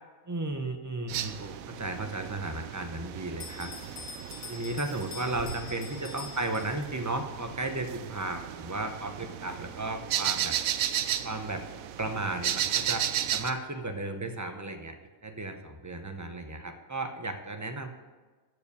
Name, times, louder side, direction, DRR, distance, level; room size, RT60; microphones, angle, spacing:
voice 1, 0.3-3.7 4.1-10.6 11.2-11.6 12.0-15.0 15.2-17.9, right 2 dB, 20° right, 6 dB, 0.6 m, -34 dB
sound 1, 1.1-13.5, right 10 dB, 85° right, 1.0 m, -34 dB
Bell, 3.4-7.1, left 5 dB, 85° left, 1.4 m, -45 dB
14.0 x 5.2 x 6.8 m, 1.3 s
omnidirectional pair, 1.4 m